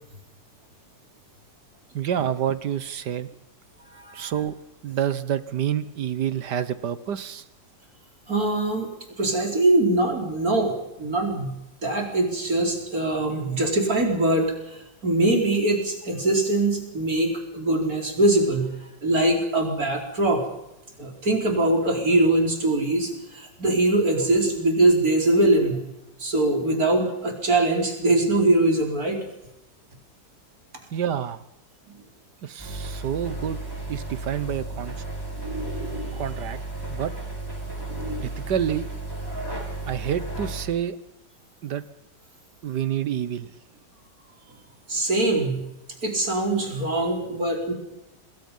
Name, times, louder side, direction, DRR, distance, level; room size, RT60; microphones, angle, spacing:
voice 1, 1.9-3.3 4.1-4.5 4.8-7.4 30.9-31.4 32.4-33.6 33.9-34.9 36.2-36.6 36.9-37.1 38.2-38.9 39.9-41.0 41.6-41.8 42.6-43.5, right 9 dB, 70° right, 14 dB, 1.7 m, -28 dB
voice 2, 3.9-4.3 8.3-8.9 9.2-11.5 11.8-14.5 15.0-18.7 19.0-20.4 21.0-25.8 26.2-29.2 44.9-45.6 46.0-47.7, right 2 dB, 50° right, 2 dB, 5.0 m, -22 dB
sound 1, 32.6-40.7, right 2 dB, 10° right, 6.5 m, -33 dB
27.0 x 21.0 x 5.6 m, 0.89 s
omnidirectional pair, 1.9 m